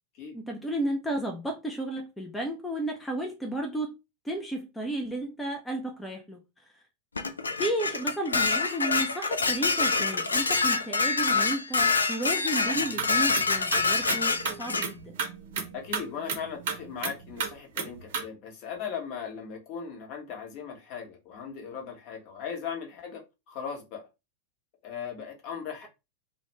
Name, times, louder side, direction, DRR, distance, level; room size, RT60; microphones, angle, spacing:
voice 1, 0.3-3.9 4.2-6.7 7.6-15.2, right 1 dB, 5° left, 0.4 m, -33 dB
Dishes pots and pans, 7.2-14.9, left 4 dB, 75° left, 0.3 m, -26 dB
sound 1, 12.8-18.2, right 6 dB, 55° right, 0.6 m, -34 dB
voice 2, 15.7-24.1 24.8-25.9, left 7 dB, 45° left, 0.9 m, -38 dB
2.3 x 2.2 x 3.0 m
figure-of-eight pair, 90°, 0 cm